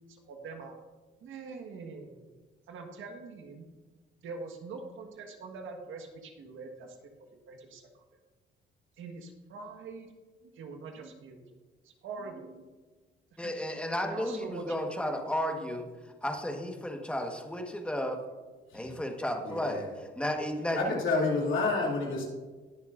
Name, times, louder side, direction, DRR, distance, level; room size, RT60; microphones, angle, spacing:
voice 1, 0.1-0.7 1.2-2.2 2.7-3.6 4.2-7.9 9.0-10.1 10.6-11.4 11.8-12.8 13.4-13.5 14.0-14.7, right 4 dB, 80° right, 4 dB, 1.6 m, -44 dB
voice 2, 13.4-15.9 16.2-18.2 18.7-21.0, equal, 5° left, 3 dB, 1.4 m, -33 dB
voice 3, 19.4-19.9 20.8-22.2, left 3 dB, 80° left, -2 dB, 2.8 m, -29 dB
20.0 x 6.9 x 2.6 m, 1.3 s
cardioid pair, 90°, 20 cm